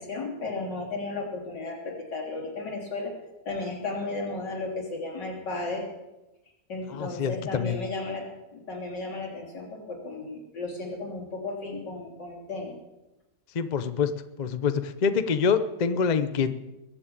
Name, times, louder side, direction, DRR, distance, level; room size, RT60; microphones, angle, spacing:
voice 1, 0.0-3.1 3.4-5.9 6.7-12.8, left 3 dB, 75° left, -2 dB, 4.0 m, -34 dB
voice 2, 6.9-7.8 13.5-14.1 14.4-16.5, left 6 dB, 45° left, 10 dB, 0.5 m, -26 dB
21.5 x 7.3 x 8.7 m, 1.0 s
omnidirectional pair, 1.9 m